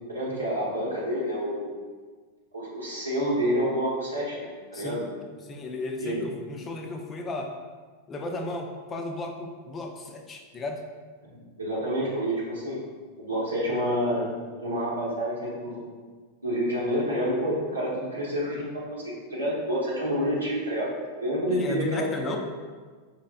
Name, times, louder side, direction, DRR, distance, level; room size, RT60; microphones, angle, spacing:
voice 1, 0.1-1.7 2.5-4.5 4.7-5.0 6.0-6.2 11.3-12.8 13.2-14.3 14.6-15.9 16.4-20.9 21.2-22.3, equal, 80° right, -6 dB, 0.9 m, -28 dB
voice 2, 5.4-7.5 8.1-10.8 21.5-22.4, left 2 dB, 25° left, 3 dB, 0.4 m, -34 dB
4.7 x 3.0 x 2.3 m, 1.5 s
figure-of-eight pair, 90°, 0 cm